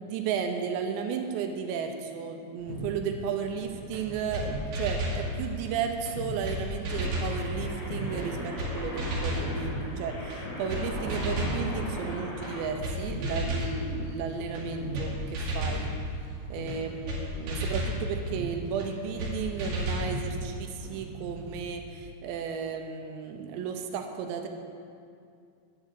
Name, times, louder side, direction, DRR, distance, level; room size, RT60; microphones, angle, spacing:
voice 1, 0.0-15.9 16.5-24.5, right 6 dB, 80° right, 5 dB, 2.9 m, -34 dB
sound 1, 2.6-21.6, right 1 dB, 40° left, 2.9 m, -40 dB
sound 2, 3.9-4.0 4.3-4.5 4.7-5.2 6.1-6.2 6.4-6.6 6.8-7.3 8.2-8.3 8.6-8.7 9.0-9.5 10.3-10.4 10.7-10.8 11.1-11.6 12.4-12.5 12.8-13.0 13.2-13.7 14.5-14.6 14.9-15.1 15.3-15.8 16.7-16.8 17.1-17.2 17.5-18.0 18.8-18.9 19.2-19.3 19.6-20.1, right 1 dB, 55° right, 3.1 m, -32 dB
sound 3, 6.9-12.6, left 1 dB, 60° left, 4.4 m, -39 dB
11.0 x 6.3 x 8.1 m, 2.3 s
omnidirectional pair, 5.4 m